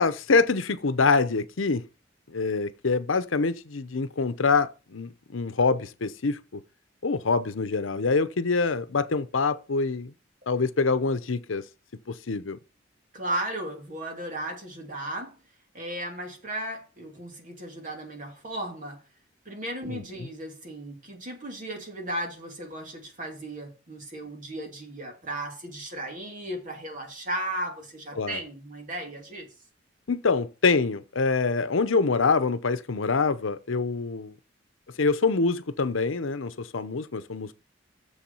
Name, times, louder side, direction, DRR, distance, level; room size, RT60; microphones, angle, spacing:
voice 1, 0.0-1.8 2.3-6.6 7.0-10.1 10.5-11.6 12.1-12.6 19.9-20.0 28.2-28.4 30.1-34.3 35.0-37.5, left 4 dB, 90° left, 0.8 m, -25 dB
voice 2, 13.1-15.4 15.7-19.0 19.4-29.5, right 1 dB, 40° right, 2.7 m, -35 dB
7.3 x 7.0 x 5.5 m
head